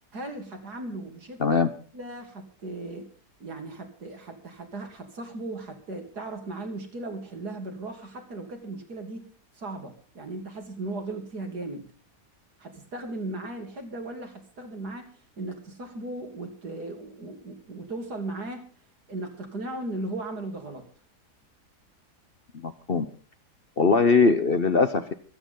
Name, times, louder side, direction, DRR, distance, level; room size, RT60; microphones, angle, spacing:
voice 1, 0.1-1.6 1.9-3.1 3.4-11.9 12.6-18.6 19.1-20.8, right 2 dB, 75° right, 3 dB, 3.5 m, -37 dB
voice 2, 22.6-23.0 23.8-25.1, left 4 dB, 40° left, 10 dB, 1.0 m, -21 dB
25.5 x 9.1 x 3.9 m, 0.40 s
omnidirectional pair, 1.7 m